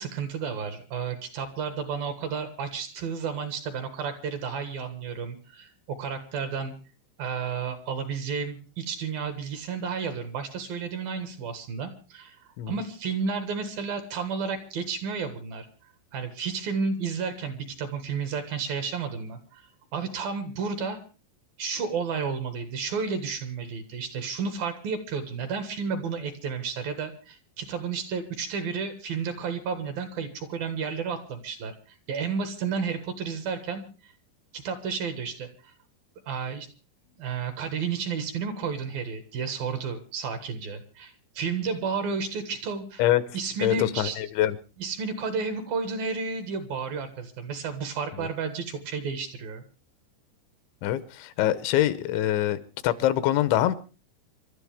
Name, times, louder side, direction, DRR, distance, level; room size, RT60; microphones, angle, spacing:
voice 1, 0.0-6.7 7.2-15.7 16.1-19.6 19.9-21.0 21.6-34.1 34.5-35.7 36.3-36.7 37.2-43.0 43.3-44.2 44.8-49.6, right 5 dB, 60° right, 8 dB, 2.9 m, -32 dB
voice 2, 43.6-44.6 48.2-48.3 50.8-52.6 52.8-53.8, left 13 dB, 80° left, 14 dB, 3.2 m, -24 dB
27.5 x 12.5 x 3.5 m, 0.34 s
omnidirectional pair, 5.3 m